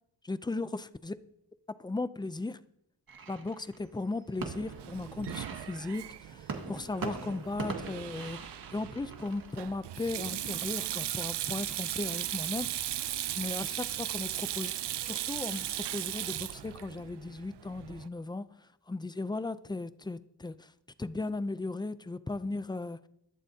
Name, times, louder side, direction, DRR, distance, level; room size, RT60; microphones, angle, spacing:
voice 1, 0.2-1.1 1.8-2.6 3.3-8.4 8.7-13.0 13.4-18.4 18.9-20.7 21.0-23.1, left 2 dB, 10° left, 0.5 m, -37 dB
sound 1, 3.1-13.2, right 4 dB, 55° right, 2.0 m, -43 dB
Sink (filling or washing), 4.4-18.1, right 12 dB, 75° right, 0.5 m, -37 dB
22.5 x 11.0 x 2.8 m
wide cardioid pair, 120°, 41 cm